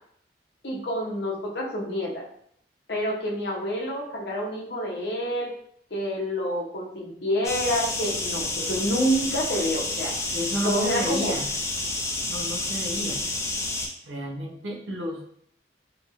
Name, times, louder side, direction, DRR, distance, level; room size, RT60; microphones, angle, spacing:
voice 1, 0.6-2.2 2.9-5.5 5.9-10.1 10.6-11.3, equal, 65° left, -2 dB, 0.7 m, -28 dB
sound 1, 7.4-13.9, left 2 dB, 15° left, 0.3 m, -29 dB
voice 2, 10.3-11.5 12.3-13.2 14.0-15.3, equal, 85° right, 0 dB, 0.6 m, -31 dB
2.8 x 2.4 x 2.8 m, 0.67 s
head